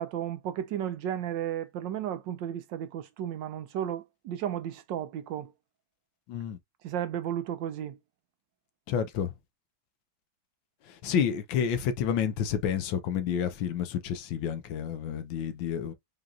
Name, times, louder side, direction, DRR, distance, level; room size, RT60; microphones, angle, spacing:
voice 1, 0.0-5.5 6.8-8.0, right 10 dB, 75° right, 1.2 m, -34 dB
voice 2, 6.3-6.6 8.9-9.3 10.9-15.9, left 8 dB, 80° left, 1.5 m, -29 dB
5.1 x 2.9 x 2.4 m
omnidirectional pair, 2.1 m